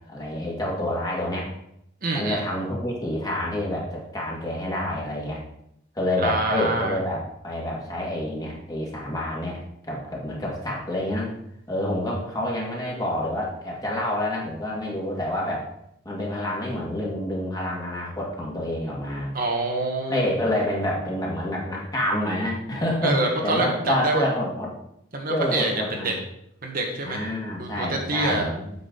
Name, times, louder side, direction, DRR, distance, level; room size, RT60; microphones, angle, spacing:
voice 1, 0.1-1.5 2.1-5.4 6.0-11.3 11.7-15.7 16.1-19.3 20.1-24.7 25.3-26.1 27.0-28.7, left 1 dB, 20° left, -3 dB, 2.0 m, -28 dB
voice 2, 2.0-2.4 6.2-7.0 19.3-20.3 23.0-24.2 25.1-26.1 26.6-27.2 27.6-28.5, right 2 dB, 45° right, 1 dB, 1.3 m, -26 dB
8.0 x 7.2 x 3.9 m, 0.76 s
head